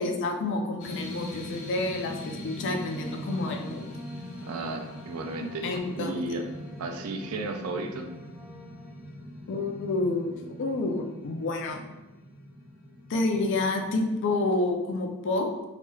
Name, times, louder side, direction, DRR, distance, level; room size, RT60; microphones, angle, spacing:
voice 1, 0.0-3.9 5.6-6.1 9.5-11.8 13.1-15.5, left 2 dB, 55° left, 3 dB, 0.4 m, -29 dB
sound 1, 0.8-14.2, left 1 dB, 80° left, 0.9 m, -41 dB
sound 2, 2.4-9.0, equal, 5° left, 0.6 m, -54 dB
voice 2, 4.5-5.7 5.9-6.5 6.8-8.1, right 2 dB, 70° right, 5 dB, 0.4 m, -33 dB
2.9 x 2.2 x 3.2 m, 1.0 s
head